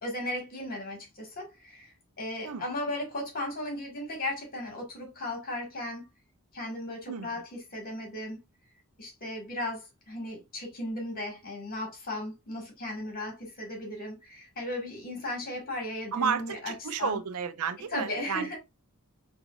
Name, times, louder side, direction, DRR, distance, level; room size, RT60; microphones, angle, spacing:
voice 1, 0.0-6.0 6.5-8.4 9.0-17.2 17.9-18.6, left 1 dB, 40° left, 1.7 m, -36 dB
voice 2, 7.1-7.4 16.1-18.6, right 6 dB, 85° right, 0.5 m, -32 dB
4.8 x 2.4 x 2.4 m
head